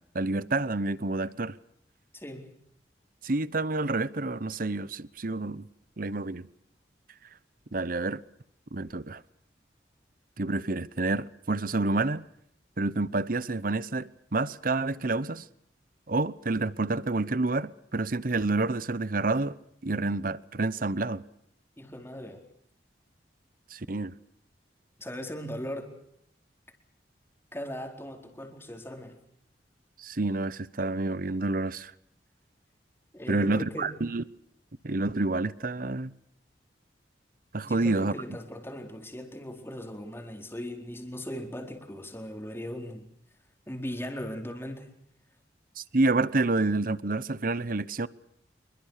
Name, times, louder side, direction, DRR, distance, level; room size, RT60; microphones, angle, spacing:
voice 1, 0.0-1.6 3.2-5.7 6.0-6.5 7.7-8.2 8.7-9.2 10.4-12.3 12.8-15.5 16.1-19.6 19.8-21.2 23.7-24.2 30.0-31.9 33.3-34.2 34.8-36.1 37.5-38.1 45.8-48.1, right 2 dB, 50° right, 0.9 m, -28 dB
voice 2, 2.1-2.5 21.8-22.4 25.0-25.9 27.5-29.2 33.1-33.9 37.6-43.1 43.7-44.9, equal, 15° left, 4.4 m, -38 dB
27.0 x 23.0 x 6.7 m
head